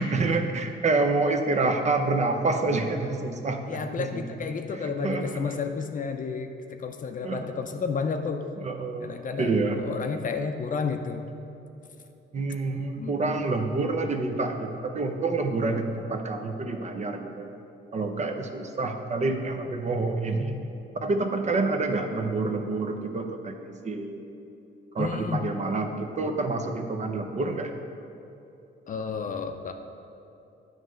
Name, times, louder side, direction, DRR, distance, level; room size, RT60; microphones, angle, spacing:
voice 1, 0.0-4.2 4.7-5.6 7.2-7.5 8.6-9.1 9.4-9.8 12.3-17.6 17.9-20.6 21.0-24.2 24.9-27.7, right 3 dB, 35° right, 5 dB, 0.6 m, -28 dB
voice 2, 3.7-8.5 9.0-11.3 13.0-13.4 25.0-25.5 28.9-29.7, left 5 dB, 40° left, 6 dB, 0.5 m, -31 dB
8.9 x 3.2 x 6.3 m, 2.8 s
cardioid pair, 90°, 20 cm